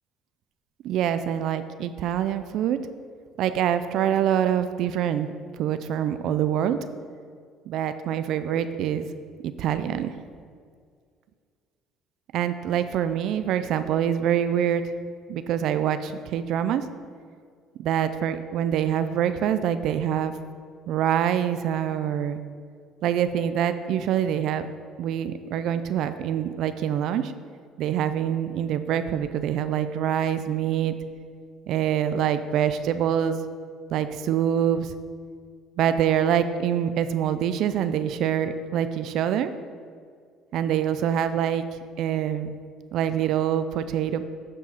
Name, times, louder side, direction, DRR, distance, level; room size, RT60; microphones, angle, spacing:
voice 1, 0.8-2.8 3.4-5.3 5.6-6.8 7.7-9.1 9.4-10.1 12.3-14.9 15.3-16.9 17.8-20.3 20.9-22.4 23.0-24.7 25.0-27.3 27.8-30.9 31.7-33.5 33.9-34.9 35.8-39.5 40.5-41.6 42.0-42.6 42.9-44.2, right 9 dB, 70° right, 11 dB, 0.4 m, -25 dB
8.8 x 4.6 x 5.7 m, 2.1 s
supercardioid pair, 85°, 0 cm